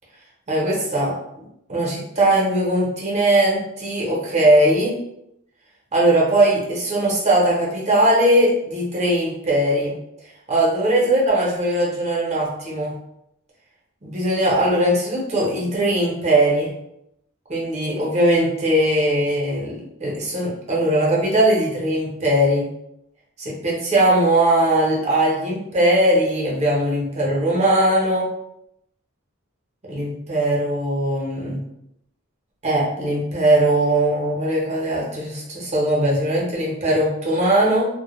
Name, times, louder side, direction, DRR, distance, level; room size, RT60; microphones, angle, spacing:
voice 1, 0.5-1.1 1.7-5.0 5.9-9.9 10.5-12.9 14.0-16.7 17.5-22.7 23.4-28.3 29.9-31.6 32.6-37.9, right 1 dB, 35° right, -5 dB, 0.7 m, -20 dB
2.1 x 2.1 x 3.0 m, 0.80 s
head